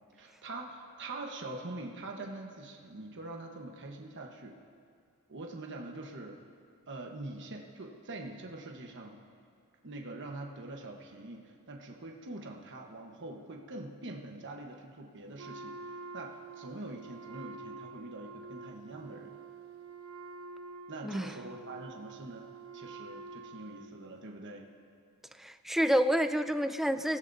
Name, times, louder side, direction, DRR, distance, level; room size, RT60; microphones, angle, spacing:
voice 1, 0.1-4.6 5.3-6.4 6.9-9.2 9.8-19.4 20.9-24.7, right 2 dB, 55° right, 1 dB, 1.2 m, -44 dB
Wind instrument woodwind instrument, 15.4-24.2, right 3 dB, 75° right, 0.9 m, -47 dB
voice 2, 25.4-27.2, equal, ahead, 9 dB, 0.4 m, -28 dB
23.5 x 16.5 x 2.7 m, 2.2 s
head